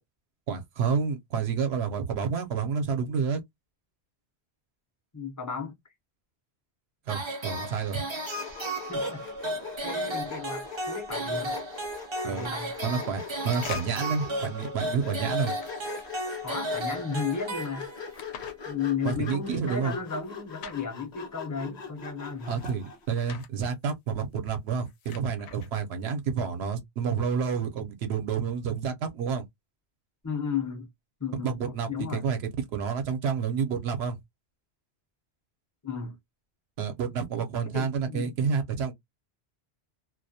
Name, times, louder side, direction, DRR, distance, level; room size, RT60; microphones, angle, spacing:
voice 1, 0.5-3.4 7.1-8.0 12.2-12.5 12.8-15.5 19.0-20.0 22.5-29.5 31.4-32.4 32.7-34.2 36.8-38.9, right 6 dB, 75° right, 0.8 m, -29 dB
voice 2, 5.1-5.7 8.9-9.2 9.8-11.6 12.2-12.7 16.4-17.9 18.6-22.7 30.2-30.9 31.2-32.2 35.8-36.2 37.7-38.3, left 5 dB, 20° left, 0.5 m, -34 dB
sound 1, 7.1-18.2, right 1 dB, 35° right, 0.5 m, -34 dB
Sawing, 8.4-23.1, left 6 dB, 45° left, 0.8 m, -41 dB
sound 2, 11.1-11.6 12.7-14.1 15.3-16.6 17.8-18.6 20.0-20.8 22.3-23.5 24.6-25.7, left 8 dB, 75° left, 0.8 m, -46 dB
2.2 x 2.0 x 2.6 m
omnidirectional pair, 1.1 m